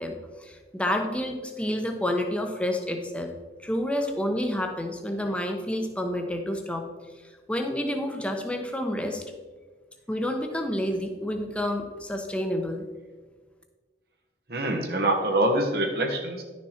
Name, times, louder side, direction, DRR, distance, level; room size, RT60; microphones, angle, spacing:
voice 1, 0.0-3.3 3.6-6.9 7.5-9.2 10.1-12.8, left 1 dB, 5° left, 4 dB, 0.9 m, -29 dB
voice 2, 14.5-16.4, right 1 dB, 55° right, 2 dB, 1.1 m, -25 dB
11.5 x 6.4 x 4.4 m, 1.4 s
head